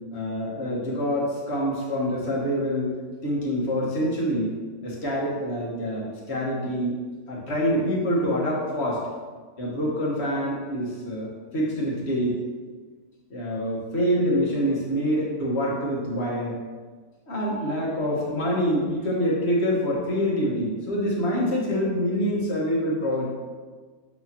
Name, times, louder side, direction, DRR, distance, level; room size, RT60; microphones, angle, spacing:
voice 1, 0.1-2.9 3.2-4.6 4.8-6.9 7.3-9.1 9.6-11.3 11.5-12.4 13.3-16.6 17.3-23.3, equal, 50° left, -4 dB, 1.7 m, -26 dB
7.2 x 6.3 x 3.0 m, 1.4 s
omnidirectional pair, 1.5 m